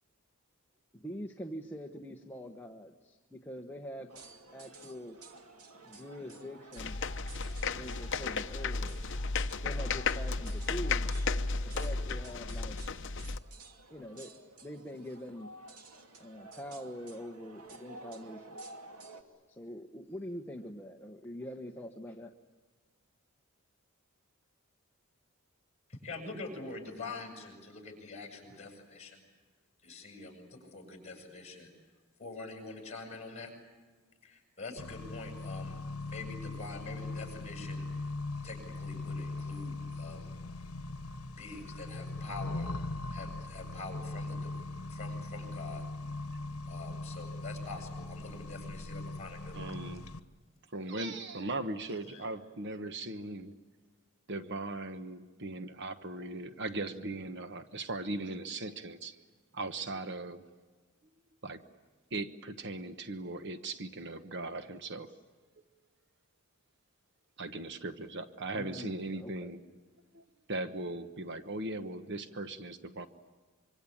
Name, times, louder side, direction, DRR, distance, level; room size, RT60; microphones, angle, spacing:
voice 1, 0.9-4.1 4.5-5.2 5.9-7.0 7.7-9.1 9.6-11.2 11.7-12.8 13.9-14.3 14.6-15.5 16.2-18.6 19.1-19.2 19.5-22.3 65.1-65.2 68.5-69.5, equal, 10° left, 2 dB, 1.1 m, -44 dB
sound 1, 4.1-19.2, right 2 dB, 85° right, 2.7 m, -52 dB
sound 2, 6.8-13.4, left 4 dB, 55° left, 0.8 m, -34 dB
voice 2, 25.9-29.2 29.8-31.7 32.2-33.5 34.2-35.8 36.1-37.9 38.4-40.3 41.4-42.7 43.1-44.5 44.9-45.8 46.7-49.8 51.9-52.2, left 3 dB, 30° left, 2 dB, 7.5 m, -45 dB
Accelerating revving vroom, 34.8-50.2, left 2 dB, 75° left, 1.2 m, -40 dB
voice 3, 49.5-50.0 50.7-53.5 54.3-59.2 59.5-60.4 61.4-61.6 62.1-65.1 67.4-69.6 70.1-70.2 70.5-73.1, right 2 dB, 50° right, 9 dB, 1.2 m, -38 dB
25.5 x 25.0 x 8.7 m, 1.4 s
head